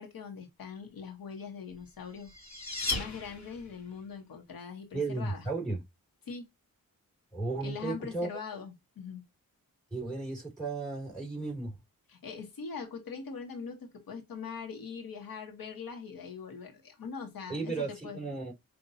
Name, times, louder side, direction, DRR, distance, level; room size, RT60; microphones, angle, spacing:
voice 1, 0.0-5.4 6.2-6.5 7.6-9.2 12.1-18.2, left 5 dB, 80° left, 1.3 m, -42 dB
sound 1, 1.8-3.9, left 2 dB, 50° left, 1.3 m, -36 dB
voice 2, 4.9-5.8 7.3-8.3 9.9-11.8 17.5-18.5, right 3 dB, ahead, 2.5 m, -34 dB
5.7 x 2.5 x 2.7 m
wide cardioid pair, 105°, 35 cm